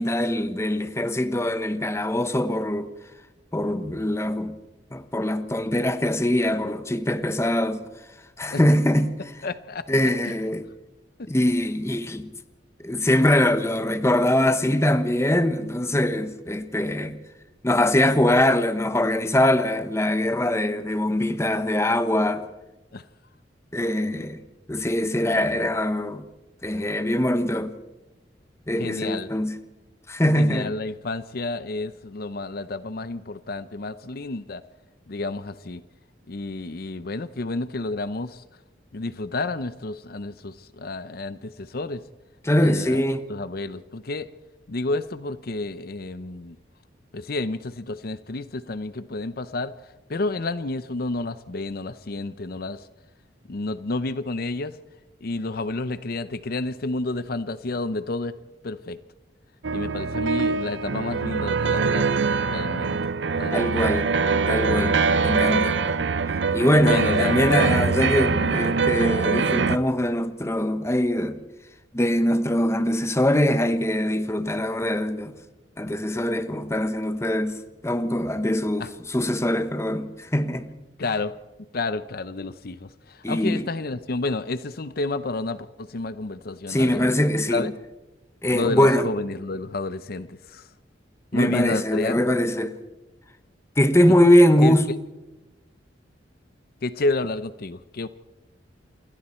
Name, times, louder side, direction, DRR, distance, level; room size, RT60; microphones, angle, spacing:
voice 1, 0.0-2.9 3.5-4.6 4.9-7.8 8.4-9.2 9.9-10.6 11.3-12.3 12.8-17.2 17.6-22.5 23.7-24.4 24.7-26.3 26.6-27.7 28.7-29.5 30.1-30.7 42.4-43.3 63.5-64.1 64.5-65.0 65.2-65.8 66.5-71.4 71.9-75.4 75.8-77.6 77.8-80.7 83.2-83.7 86.7-87.7 88.4-89.1 91.3-92.7 93.8-94.9, left 1 dB, 15° left, 1.0 m, -22 dB
voice 2, 9.4-9.8 10.3-10.4 11.2-11.3 22.9-23.0 28.8-29.3 30.3-34.6 35.1-35.8 36.3-38.4 38.9-42.0 42.6-43.0 43.3-44.3 44.7-46.6 47.1-49.7 50.1-52.9 53.5-54.8 55.2-58.3 58.6-59.0 59.7-62.2 62.5-63.0 63.3-63.7 66.8-67.6 78.8-78.9 81.0-81.3 81.7-87.1 87.5-87.7 88.5-90.7 91.3-92.2 94.6-94.7 96.8-98.1, left 2 dB, 55° left, 0.7 m, -30 dB
sound 1, 59.6-69.8, right 4 dB, 75° right, 0.7 m, -23 dB
28.0 x 22.5 x 4.4 m
head